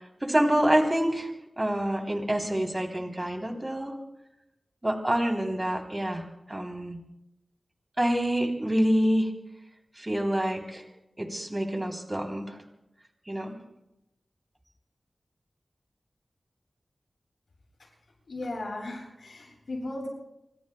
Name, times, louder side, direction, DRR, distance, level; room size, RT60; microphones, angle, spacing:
voice 1, 0.2-1.3 1.6-4.0 4.8-7.0 8.0-9.3 10.0-10.8 11.2-12.6 13.3-13.6, right 1 dB, 20° right, 2 dB, 3.1 m, -27 dB
voice 2, 18.3-20.1, left 2 dB, 80° left, -2 dB, 7.5 m, -36 dB
27.0 x 24.0 x 2.2 m, 0.89 s
wide cardioid pair, 85°, 0 cm